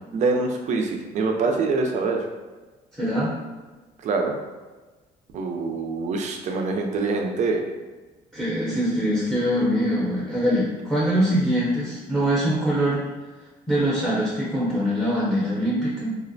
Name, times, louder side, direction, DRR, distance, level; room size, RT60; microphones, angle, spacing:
voice 1, 0.1-2.2 4.0-4.3 5.3-7.6, right 3 dB, 45° right, 2 dB, 0.4 m, -24 dB
voice 2, 3.0-3.3 8.3-13.0 13.7-16.1, equal, ahead, -9 dB, 0.7 m, -23 dB
2.4 x 2.1 x 2.6 m, 1.2 s
cardioid pair, 110°, 17 cm